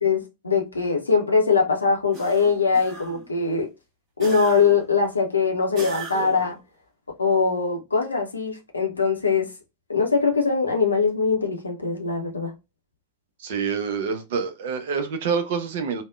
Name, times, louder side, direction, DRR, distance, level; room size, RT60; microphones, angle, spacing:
voice 1, 0.0-3.7 4.2-6.6 7.2-9.5 9.9-12.5, left 5 dB, 80° left, 0.5 m, -22 dB
sound 1, 2.1-3.3 4.2-4.9 5.8-6.6, right 3 dB, 30° right, 1.3 m, -38 dB
voice 2, 13.4-16.0, right 6 dB, 55° right, 0.5 m, -27 dB
3.4 x 2.1 x 2.3 m
figure-of-eight pair, 90°, 0 cm